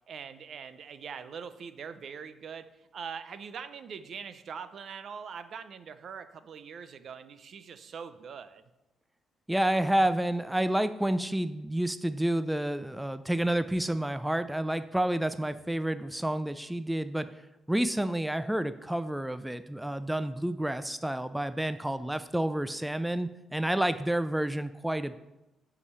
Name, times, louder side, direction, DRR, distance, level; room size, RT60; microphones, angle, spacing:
voice 1, 0.1-8.6, right 6 dB, 60° right, 12 dB, 0.6 m, -42 dB
voice 2, 9.5-17.3 17.7-25.2, right 1 dB, 5° right, 12 dB, 0.4 m, -29 dB
8.4 x 4.9 x 5.6 m, 0.96 s
cardioid pair, 90°, 0 cm